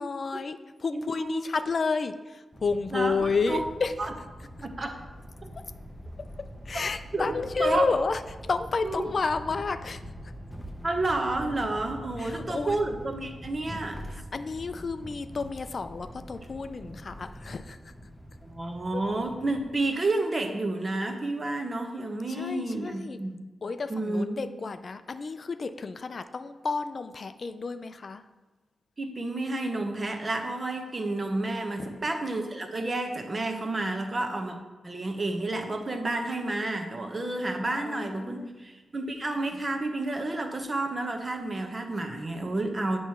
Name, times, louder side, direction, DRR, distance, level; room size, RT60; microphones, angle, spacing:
voice 1, 0.0-3.9 6.2-8.2 8.5-10.0 12.2-12.8 14.1-17.9 18.9-19.0 22.3-23.2 23.6-28.2 31.8-32.0 37.6-38.5, left 4 dB, 50° left, 10 dB, 0.3 m, -31 dB
voice 2, 0.9-1.5 2.9-3.6 4.0-4.1 4.6-5.0 7.1-7.9 8.8-9.0 10.8-14.0 18.4-23.4 23.9-24.4 29.0-34.6 34.8-43.0, right 2 dB, 35° right, 5 dB, 0.9 m, -30 dB
sound 1, 2.5-19.8, equal, 5° left, 0.7 m, -44 dB
7.9 x 3.1 x 5.7 m, 1.3 s
cardioid pair, 80°, 0 cm